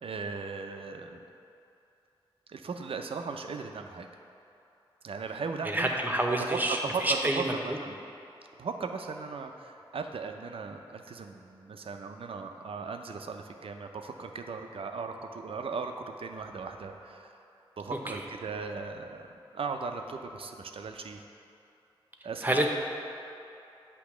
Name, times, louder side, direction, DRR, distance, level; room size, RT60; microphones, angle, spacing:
voice 1, 0.0-1.2 2.5-4.1 5.0-5.9 6.5-8.0 8.6-17.4 17.8-19.2 19.5-21.2 22.2-22.7, right 4 dB, 65° right, 5 dB, 0.5 m, -37 dB
voice 2, 5.6-7.5 18.1-18.2 22.4-22.7, right 1 dB, 15° right, 1 dB, 0.9 m, -28 dB
8.2 x 2.9 x 6.0 m, 2.8 s
cardioid pair, 40°, 10 cm